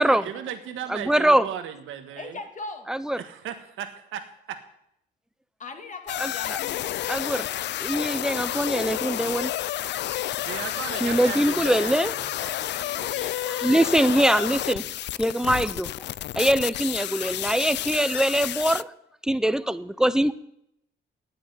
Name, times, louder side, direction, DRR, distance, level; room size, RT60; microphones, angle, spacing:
voice 1, 0.0-2.4 3.2-4.6 10.4-13.3, right 9 dB, 85° right, 8 dB, 1.5 m, -37 dB
voice 2, 0.9-1.5 2.9-3.2 6.2-6.3 7.1-7.5 7.8-9.5 11.0-12.1 12.4-12.5 13.1-14.8 15.2-15.9 16.4-18.9 19.2-20.3, right 1 dB, 5° right, 15 dB, 0.7 m, -23 dB
voice 3, 2.1-2.9 5.6-6.8, left 3 dB, 40° left, 5 dB, 2.2 m, -38 dB
sound 1, 6.1-18.8, left 13 dB, 60° left, 0.4 m, -30 dB
9.3 x 8.9 x 9.5 m, 0.75 s
cardioid pair, 90°, 20 cm